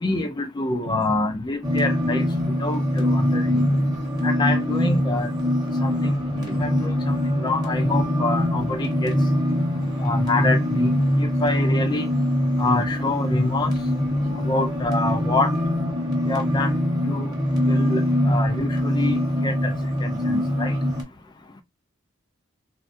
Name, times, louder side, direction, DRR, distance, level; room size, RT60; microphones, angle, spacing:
voice 1, 0.0-2.2 2.6-3.5 4.2-5.3 5.8-6.1 6.6-9.1 10.0-12.1 12.6-13.7 14.4-15.5 16.3-16.7 17.1-17.3 17.7-19.7 20.3-20.7, left 2 dB, 20° left, 0.3 m, -26 dB
sound 1, 1.6-21.0, left 1 dB, 20° right, 0.9 m, -23 dB
voice 2, 3.5-4.0 6.3-6.8 14.2-14.5 17.2-17.3 20.2-20.5, right 1 dB, 75° right, 0.7 m, -37 dB
3.4 x 2.2 x 2.5 m
head